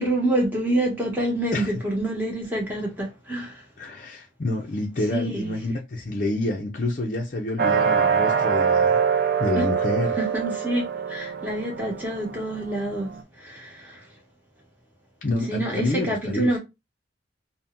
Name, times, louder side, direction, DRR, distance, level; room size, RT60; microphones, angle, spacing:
voice 1, 0.0-3.6 5.1-5.5 10.2-13.1 13.4-14.0 15.5-16.6, right 1 dB, 10° right, 1.0 m, -27 dB
voice 2, 1.5-1.8 3.8-9.0 9.4-10.2 15.2-16.6, left 2 dB, 45° left, 0.5 m, -28 dB
sound 1, 7.6-13.2, right 7 dB, 55° right, 0.4 m, -24 dB
2.7 x 2.1 x 3.5 m
head